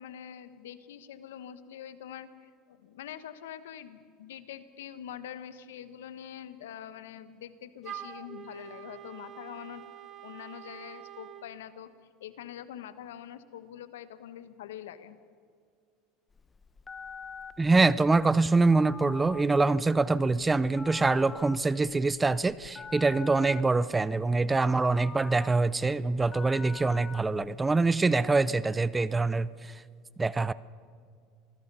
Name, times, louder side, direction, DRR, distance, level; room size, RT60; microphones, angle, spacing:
voice 1, 0.0-9.8 10.2-11.9 12.2-15.2, left 10 dB, 90° left, 12 dB, 1.2 m, -44 dB
Wind instrument woodwind instrument, 7.8-11.5, right 10 dB, 40° right, 1.3 m, -45 dB
Telephone, 16.3-27.7, left 5 dB, 20° left, 0.9 m, -46 dB
voice 2, 17.6-29.7 30.2-30.5, right 3 dB, 15° right, 18 dB, 0.6 m, -25 dB
27.0 x 20.5 x 5.5 m, 2.1 s
supercardioid pair, 105°, 0 cm